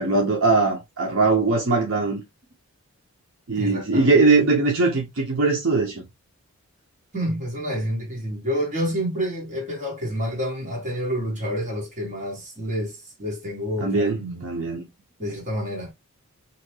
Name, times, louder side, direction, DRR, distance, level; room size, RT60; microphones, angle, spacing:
voice 1, 0.0-2.2 3.5-6.0 13.8-14.9, right 3 dB, 60° right, 0.6 m, -21 dB
voice 2, 3.5-4.1 7.1-14.5 15.2-15.9, equal, 35° right, 1.3 m, -28 dB
2.8 x 2.2 x 2.9 m
head